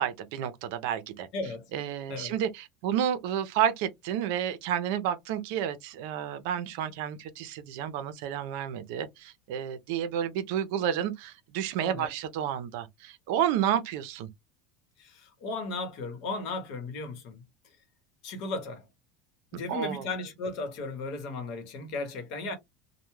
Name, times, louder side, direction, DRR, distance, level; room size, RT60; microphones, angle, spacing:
voice 1, 0.0-1.3 1.7-14.3 19.7-20.1, right 9 dB, 70° right, 0.5 m, -30 dB
voice 2, 1.3-1.7 2.1-2.3 11.8-12.1 15.0-17.8 18.2-18.9 19.5-22.6, left 3 dB, 60° left, 0.9 m, -36 dB
2.2 x 2.1 x 3.0 m
supercardioid pair, 130°, 0 cm